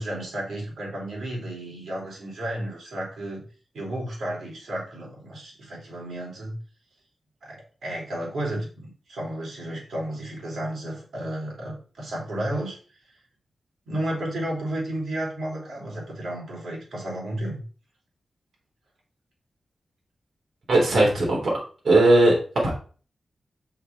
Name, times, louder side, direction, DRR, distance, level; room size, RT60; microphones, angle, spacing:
voice 1, 0.0-3.4 3.7-6.6 7.4-12.8 13.9-17.6, right 1 dB, 85° right, -3 dB, 3.5 m, -32 dB
voice 2, 20.7-21.5 21.8-22.3 22.6-22.7, right 2 dB, 70° right, -4 dB, 3.3 m, -18 dB
5.8 x 5.6 x 4.5 m, 0.39 s
wide cardioid pair, 130°, 0 cm